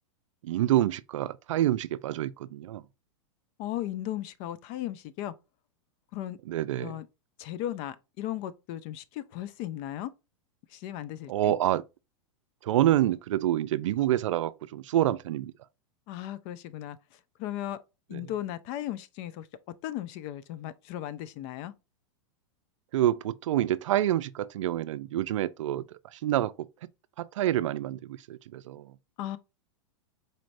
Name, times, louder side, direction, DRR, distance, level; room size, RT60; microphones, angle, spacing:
voice 1, 0.4-2.8 6.5-7.0 11.3-11.8 12.6-15.5 18.1-18.2 22.9-25.8 26.1-26.7 27.2-28.9, right 13 dB, 75° right, 0.4 m, -27 dB
voice 2, 3.6-5.3 6.1-6.4 6.8-7.1 7.4-10.1 10.7-11.5 16.1-17.0 17.4-17.8 18.1-19.5 19.8-21.7 29.2-29.4, left 13 dB, 45° left, 0.5 m, -36 dB
4.2 x 3.2 x 2.5 m
hypercardioid pair, 130°, 16 cm